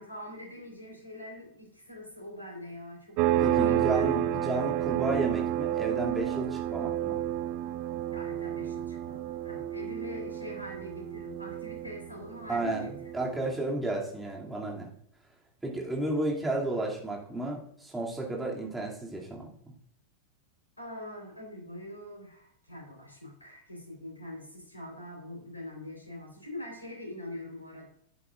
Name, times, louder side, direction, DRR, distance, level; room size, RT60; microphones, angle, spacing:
voice 1, 0.0-4.2 8.1-13.1 20.8-27.9, left 1 dB, 85° left, 0 dB, 4.0 m, -43 dB
sound 1, 3.2-13.5, right 12 dB, 45° right, 0.4 m, -30 dB
voice 2, 3.4-7.2 12.5-14.9 15.6-19.5, right 2 dB, 10° right, -3 dB, 2.5 m, -32 dB
11.5 x 10.0 x 2.5 m, 0.67 s
figure-of-eight pair, 90°, 0 cm